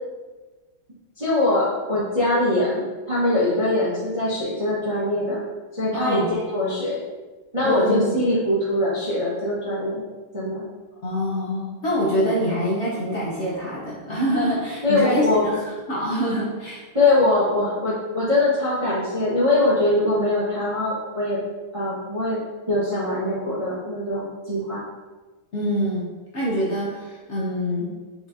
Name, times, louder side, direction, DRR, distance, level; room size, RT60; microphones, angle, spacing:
voice 1, 1.2-5.4 5.7-7.0 7.5-10.0 10.3-10.6 14.8-15.4 16.9-21.4 21.7-22.4 22.7-24.8, left 2 dB, 25° right, -10 dB, 0.8 m, -22 dB
voice 2, 5.9-6.3 7.6-8.1 11.0-16.8 25.5-26.1 26.3-27.9, equal, 50° left, -7 dB, 0.8 m, -25 dB
4.8 x 4.0 x 2.6 m, 1.3 s
omnidirectional pair, 2.3 m